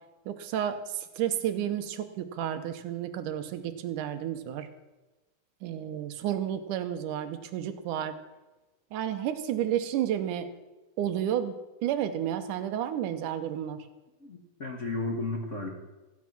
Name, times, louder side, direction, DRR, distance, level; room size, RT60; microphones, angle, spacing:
voice 1, 0.3-0.8 1.2-4.7 5.6-8.1 8.9-10.5 11.0-11.5 11.8-13.8, right 10 dB, 85° right, 9 dB, 2.4 m, -31 dB
voice 2, 14.2-15.7, left 2 dB, 60° left, 1 dB, 0.7 m, -33 dB
15.0 x 9.6 x 6.0 m, 1.1 s
omnidirectional pair, 3.6 m